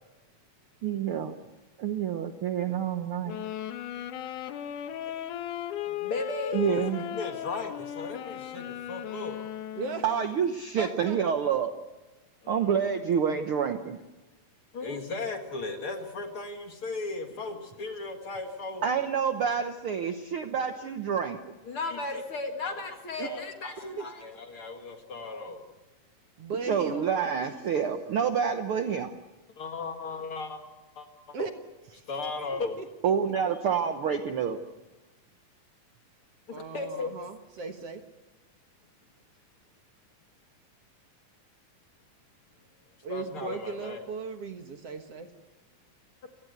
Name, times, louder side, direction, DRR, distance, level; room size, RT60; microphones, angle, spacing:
voice 1, 0.8-1.3 1.8-3.4 6.5-7.2 10.0-11.7 12.5-14.0 18.8-21.4 26.7-29.1 33.0-34.6, right 7 dB, 80° right, 7 dB, 1.2 m, -28 dB
sound 1, 3.2-10.3, left 11 dB, 70° left, 2.5 m, -36 dB
voice 2, 5.9-9.4 12.4-12.7 14.7-18.8 21.7-25.7 29.6-30.6 31.0-31.4 32.1-32.8 36.6-37.1 43.1-44.1 46.2-46.3, left 3 dB, 45° left, 5 dB, 2.3 m, -36 dB
voice 3, 10.8-11.2 23.2-23.3 24.0-24.1 26.4-27.1 27.4-27.5 31.3-31.5 31.9-32.0 32.5-32.9 36.5-38.0 43.0-45.3, right 4 dB, 55° right, 6 dB, 2.0 m, -37 dB
28.5 x 17.5 x 8.1 m, 1.1 s
omnidirectional pair, 4.0 m